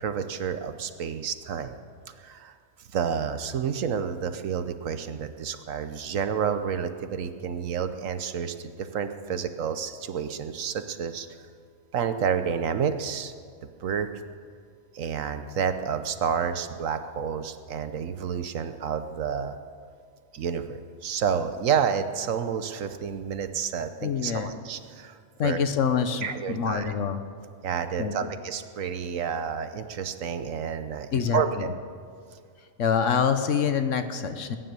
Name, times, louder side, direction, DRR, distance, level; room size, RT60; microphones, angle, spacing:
voice 1, 0.0-1.8 2.2-2.5 2.9-11.3 11.9-13.3 13.6-14.1 14.9-19.6 20.3-25.6 26.2-26.9 27.6-31.7, right 7 dB, 70° right, 9 dB, 1.2 m, -30 dB
voice 2, 24.0-24.5 25.4-27.2 28.0-28.3 31.1-31.7 32.8-34.6, left 7 dB, 65° left, 9 dB, 1.3 m, -26 dB
20.5 x 10.0 x 6.8 m, 2.1 s
omnidirectional pair, 1.4 m